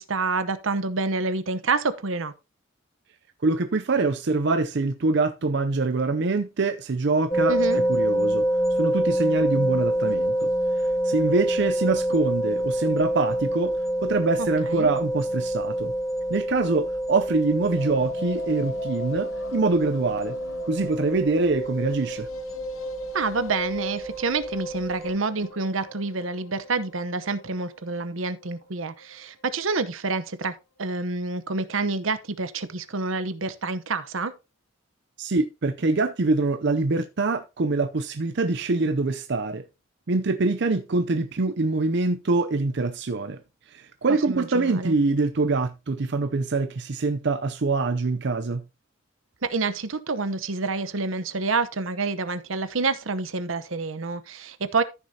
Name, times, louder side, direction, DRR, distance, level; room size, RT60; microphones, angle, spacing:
voice 1, 0.0-2.3 7.5-7.8 14.4-14.9 23.1-30.5 30.8-34.3 44.3-44.9 49.4-54.8, right 3 dB, 75° right, 0.9 m, -28 dB
voice 2, 3.4-8.4 8.8-10.5 11.0-13.7 14.0-15.9 16.3-20.3 20.7-22.3 35.2-39.6 40.1-43.4 43.7-48.6, right 3 dB, 55° right, 0.6 m, -24 dB
sound 1, 7.3-25.1, right 1 dB, 15° left, 0.8 m, -27 dB
sound 2, 17.7-29.9 30.2-30.3 30.5-30.6 30.9-31.0, left 2 dB, 85° left, 0.9 m, -42 dB
14.0 x 6.4 x 2.8 m
head